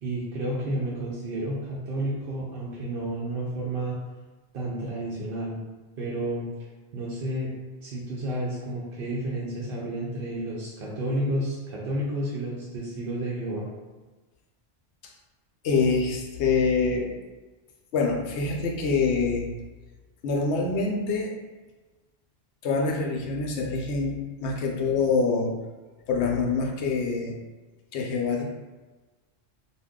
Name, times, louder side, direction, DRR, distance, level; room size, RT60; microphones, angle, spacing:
voice 1, 0.0-4.0 4.5-5.6 6.0-6.5 6.9-7.5 7.8-13.7, right 1 dB, 60° right, -5 dB, 0.7 m, -31 dB
voice 2, 15.6-17.2 17.9-19.5 20.2-21.3 22.6-25.5 26.1-27.4 27.9-28.4, left 4 dB, 75° left, 0 dB, 0.8 m, -25 dB
2.5 x 2.2 x 3.5 m, 1.2 s
omnidirectional pair, 1.2 m